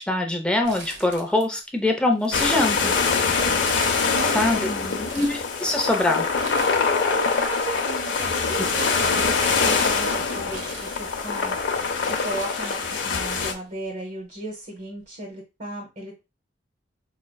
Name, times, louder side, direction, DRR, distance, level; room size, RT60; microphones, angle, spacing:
voice 1, 0.0-2.9 4.3-4.6 5.1-6.2, left 2 dB, 5° left, 2 dB, 0.5 m, -23 dB
Crumpling crinkling, 0.6-1.6 1.9-3.2 3.6-4.4 4.9-5.5 6.3-7.1 7.3-11.4 12.0-12.1 12.3-13.4 13.7-13.8 14.8-15.0, right 2 dB, 80° right, 1.3 m, -41 dB
sound 1, 2.3-13.5, left 5 dB, 85° left, 0.6 m, -24 dB
voice 2, 4.1-5.1 7.0-16.2, right 2 dB, 45° right, -1 dB, 0.9 m, -35 dB
4.9 x 2.3 x 2.2 m, 0.26 s
head